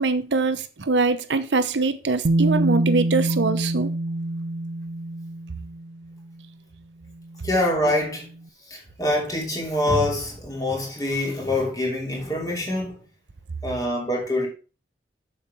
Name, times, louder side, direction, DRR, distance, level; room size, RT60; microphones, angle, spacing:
voice 1, 0.0-3.9, right 3 dB, 85° right, 0.8 m, -23 dB
Bass guitar, 2.2-6.2 7.3-7.4, right 1 dB, 60° right, 0.5 m, -25 dB
voice 2, 7.4-8.3 8.7-13.0 13.6-14.5, left 1 dB, 20° left, 2.8 m, -25 dB
7.4 x 6.5 x 4.5 m
head